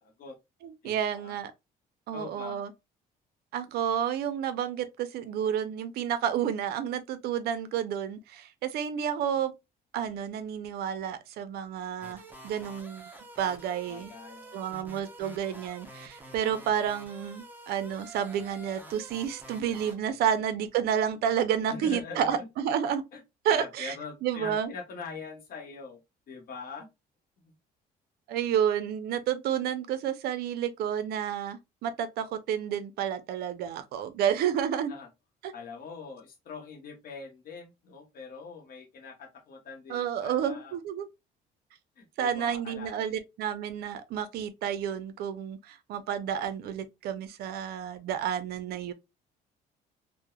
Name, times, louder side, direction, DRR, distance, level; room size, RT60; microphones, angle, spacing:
voice 1, 0.0-0.4 0.8-1.4 2.1-2.6 13.9-14.6 20.1-20.2 21.7-22.5 23.1-23.2 23.5-26.0 26.3-26.9 27.4-27.5 28.3-28.4 34.9-35.1 35.5-40.8 42.0-43.2, left 4 dB, 60° left, 0.9 m, -43 dB
voice 2, 0.6-1.5 2.1-2.7 3.5-9.5 9.9-13.1 13.4-14.1 14.5-23.0 23.4-23.9 24.2-24.7 28.3-34.9 35.4-35.5 39.9-41.1 42.2-48.9, right 9 dB, 70° right, 0.4 m, -30 dB
sound 1, 12.0-20.0, right 1 dB, 10° right, 0.6 m, -48 dB
2.9 x 2.0 x 2.2 m
cardioid pair, 110°, 17 cm